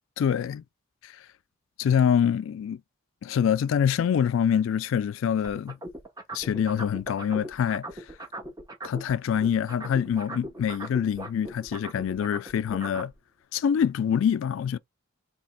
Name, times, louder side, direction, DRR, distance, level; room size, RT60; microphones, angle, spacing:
voice 1, 0.2-0.6 1.0-1.1 1.8-2.8 3.2-5.8 6.3-7.9 8.8-13.1 13.5-14.8, left 8 dB, 70° left, 0.3 m, -25 dB
sound 1, 5.4-9.1 9.4-13.1, right 2 dB, 20° right, 0.7 m, -39 dB
3.3 x 2.8 x 4.2 m
head